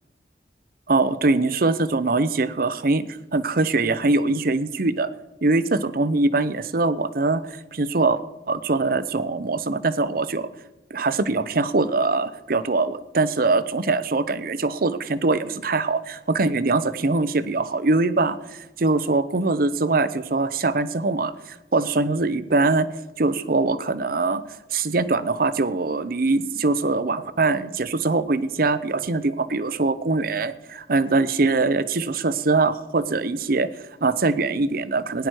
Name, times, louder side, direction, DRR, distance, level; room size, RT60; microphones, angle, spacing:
voice 1, 0.9-3.0 3.3-5.1 5.4-8.2 8.5-10.5 10.9-22.9 23.2-24.4 24.7-35.3, right 3 dB, 55° right, 14 dB, 0.7 m, -22 dB
18.5 x 10.5 x 4.6 m, 1.0 s
head